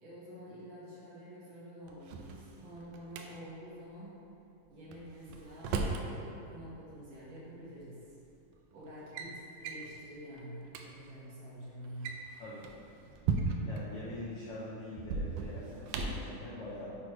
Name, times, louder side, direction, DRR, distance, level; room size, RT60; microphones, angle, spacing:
voice 1, 0.0-4.2 4.7-8.0 8.7-12.1, equal, 60° right, -9 dB, 2.6 m, -48 dB
Drawer open or close, 1.9-3.2 4.9-6.1 7.4-7.5 8.3-8.5 8.9-9.3 9.6-9.9 10.4-10.5 10.7-10.8 11.8-13.8 15.0-16.3, right 4 dB, 80° right, 1.7 m, -36 dB
voice 2, 12.4-12.8 13.6-17.0, left 1 dB, 85° left, -8 dB, 1.2 m, -44 dB
7.8 x 3.1 x 4.8 m, 2.7 s
omnidirectional pair, 3.7 m